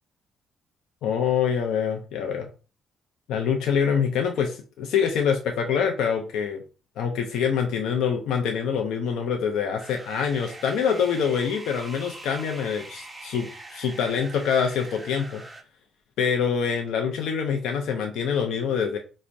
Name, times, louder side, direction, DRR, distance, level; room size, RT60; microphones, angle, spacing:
voice 1, 1.0-2.5 3.3-6.6 7.0-15.4 16.2-19.0, left 7 dB, 85° left, 4 dB, 0.4 m, -25 dB
sound 1, 9.8-15.6, right 2 dB, 10° right, 0.6 m, -43 dB
4.3 x 2.0 x 2.5 m, 0.34 s
cardioid pair, 90°, 0 cm